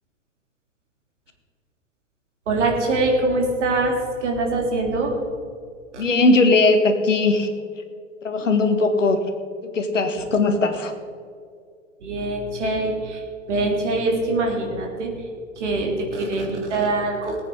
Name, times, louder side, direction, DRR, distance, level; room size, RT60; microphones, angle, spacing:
voice 1, 2.5-5.1 5.9-6.0 12.0-13.2 13.5-15.1 15.6-17.4, right 2 dB, 70° right, 1 dB, 3.4 m, -23 dB
voice 2, 6.0-7.5 8.2-9.2 9.7-10.9, left 3 dB, 80° left, 7 dB, 1.9 m, -19 dB
19.0 x 9.1 x 5.0 m, 2.2 s
figure-of-eight pair, 100°, 37 cm